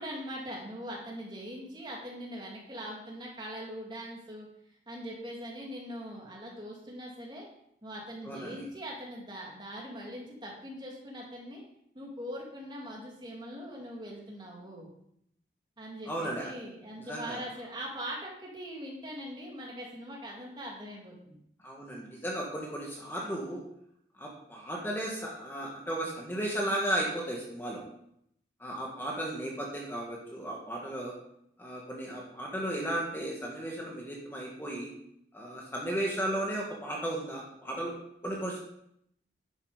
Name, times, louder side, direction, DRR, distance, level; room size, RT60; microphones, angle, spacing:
voice 1, 0.0-4.5 4.9-7.5 7.8-11.6 11.9-14.9 15.8-21.4, equal, 25° right, -2 dB, 2.6 m, -41 dB
voice 2, 8.3-8.6 16.1-16.5 17.1-17.4 21.6-23.6 24.2-27.8 28.6-31.1 31.6-34.9 35.3-37.9 38.2-38.6, right 1 dB, 10° left, -3 dB, 1.8 m, -35 dB
10.5 x 7.4 x 5.1 m, 0.74 s
head